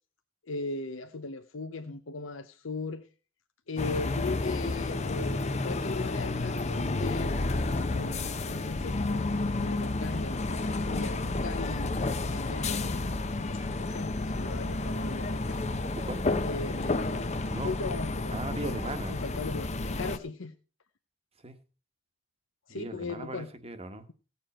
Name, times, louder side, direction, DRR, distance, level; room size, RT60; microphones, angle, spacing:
voice 1, 0.5-3.1 3.7-7.4 7.9-11.9 12.3-13.1 13.5-15.7 16.4-17.4 17.6-18.8 19.1-20.6 22.7-23.5, left 3 dB, 70° left, 0.8 m, -38 dB
sound 1, 3.8-20.2, left 2 dB, 35° left, 0.7 m, -31 dB
voice 2, 16.0-16.3 17.5-17.8 18.3-19.2 21.4-21.6 22.7-24.0, right 2 dB, 30° right, 1.2 m, -38 dB
17.0 x 7.1 x 4.3 m
head